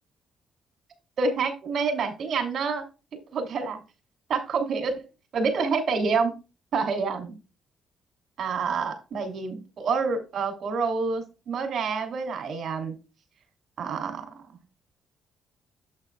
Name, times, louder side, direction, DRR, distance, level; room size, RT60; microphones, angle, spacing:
voice 1, 1.2-2.8 3.3-3.8 4.3-5.0 5.3-6.3 6.7-7.4 8.4-12.9 13.8-14.3, right 4 dB, 60° right, 6 dB, 2.9 m, -27 dB
8.7 x 8.3 x 2.3 m, 0.28 s
cardioid pair, 90°, 0 cm